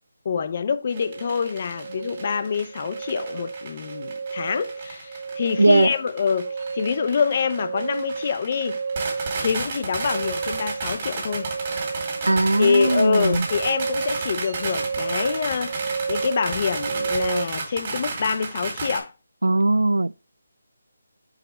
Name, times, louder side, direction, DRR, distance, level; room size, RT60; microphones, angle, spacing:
voice 1, 0.2-8.8 9.4-11.5 12.6-19.1, left 6 dB, 40° left, 0.5 m, -26 dB
sound 1, 0.9-19.0, right 3 dB, 35° right, 2.0 m, -33 dB
sound 2, 0.9-17.5, right 5 dB, 55° right, 0.7 m, -32 dB
voice 2, 5.6-5.9 12.2-13.5 19.4-20.2, right 2 dB, 90° right, 0.3 m, -19 dB
4.8 x 4.4 x 4.9 m
figure-of-eight pair, 160°, 0 cm